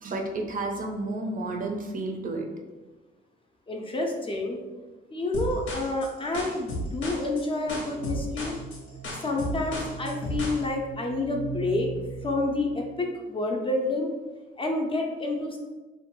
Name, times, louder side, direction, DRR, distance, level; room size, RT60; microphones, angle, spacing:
voice 1, 0.0-2.5, right 2 dB, 45° right, 3 dB, 0.5 m, -31 dB
voice 2, 3.7-4.6 5.1-8.6 9.2-11.9 12.2-14.1 14.6-15.6, left 2 dB, 25° left, 1 dB, 0.4 m, -29 dB
sound 1, 5.3-10.6, left 1 dB, 90° left, 0.8 m, -34 dB
sound 2, 7.7-13.0, right 5 dB, 90° right, 0.7 m, -40 dB
2.6 x 2.1 x 2.9 m, 1.2 s
cardioid pair, 90°, 20 cm